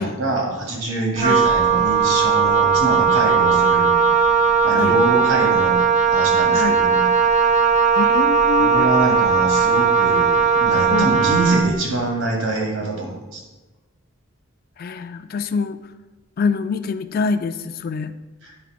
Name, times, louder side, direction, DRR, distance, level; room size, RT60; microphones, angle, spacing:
voice 1, 0.0-3.9 4.6-7.0 8.6-13.4 18.4-18.5, right 2 dB, 90° right, 0 dB, 2.0 m, -24 dB
Wind instrument woodwind instrument, 1.2-11.7, right 6 dB, 35° right, 0.4 m, -17 dB
voice 2, 6.5-6.8 8.0-8.9 10.9-11.2 14.8-15.8 16.4-18.1, left 4 dB, 45° left, 11 dB, 0.3 m, -25 dB
8.9 x 3.4 x 5.0 m, 1.2 s
head